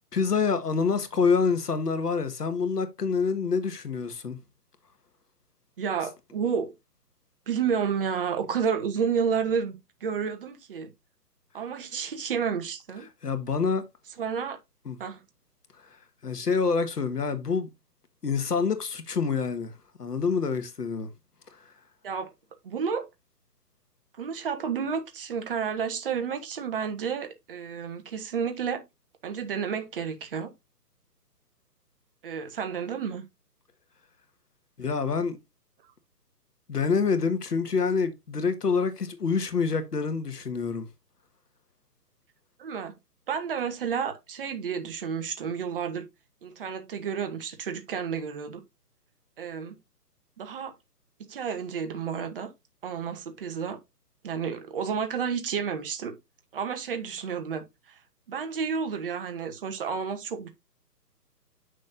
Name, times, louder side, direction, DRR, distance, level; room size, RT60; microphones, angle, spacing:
voice 1, 0.1-4.4 13.2-13.9 14.8-15.0 15.8-15.9 16.2-17.7 18.2-19.7 20.0-21.1 21.5-21.6 34.8-35.4 36.7-40.9, left 5 dB, 70° left, 1.7 m, -26 dB
voice 2, 5.8-6.7 7.5-9.8 10.0-10.9 11.5-13.1 14.2-14.6 15.0-15.2 22.0-22.3 22.6-23.1 24.2-28.8 29.2-30.5 32.2-33.2 42.6-43.0 43.3-46.1 46.4-48.6 49.4-49.8 50.4-50.7 51.2-52.5 52.8-53.8 54.2-56.2 56.5-57.9 58.3-60.5, right 6 dB, 35° right, 1.1 m, -31 dB
7.8 x 6.4 x 2.6 m
figure-of-eight pair, 145°, 49 cm